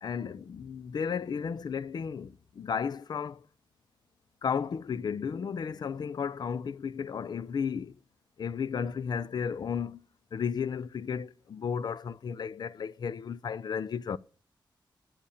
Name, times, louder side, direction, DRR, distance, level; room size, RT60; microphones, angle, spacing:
voice 1, 0.0-3.5 4.4-8.0 8.4-10.0 10.3-14.2, left 6 dB, 55° left, 0.5 m, -33 dB
8.6 x 8.2 x 6.4 m
wide cardioid pair, 125°, 8 cm